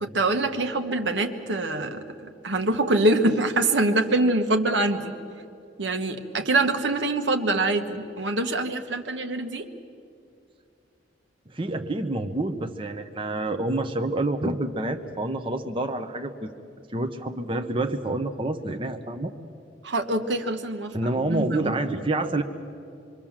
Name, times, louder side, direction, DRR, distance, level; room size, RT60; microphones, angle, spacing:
voice 1, 0.0-5.1 5.8-9.7 19.8-21.0 21.3-22.0, right 2 dB, 75° right, 5 dB, 1.6 m, -25 dB
voice 2, 11.5-16.5 16.9-19.3 20.9-22.4, right 2 dB, 30° right, 5 dB, 0.9 m, -28 dB
26.0 x 24.0 x 7.4 m, 2.5 s
head